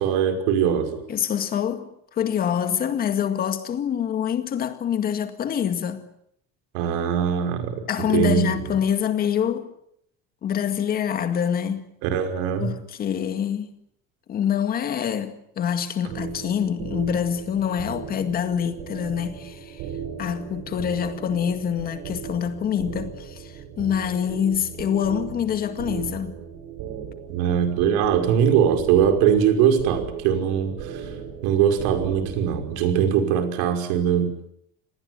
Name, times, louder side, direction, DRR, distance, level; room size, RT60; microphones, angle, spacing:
voice 1, 0.0-1.0 6.7-8.6 12.0-12.7 27.3-31.1 31.4-34.5, right 8 dB, 90° right, 5.5 m, -21 dB
voice 2, 1.1-6.0 7.9-9.7 10.4-11.8 12.6-13.7 14.3-19.8 20.2-26.4, left 8 dB, 30° left, 2.1 m, -25 dB
sound 1, 16.1-32.8, right 7 dB, 65° right, 6.7 m, -36 dB
28.0 x 20.0 x 9.6 m
cardioid pair, 180°, 29 cm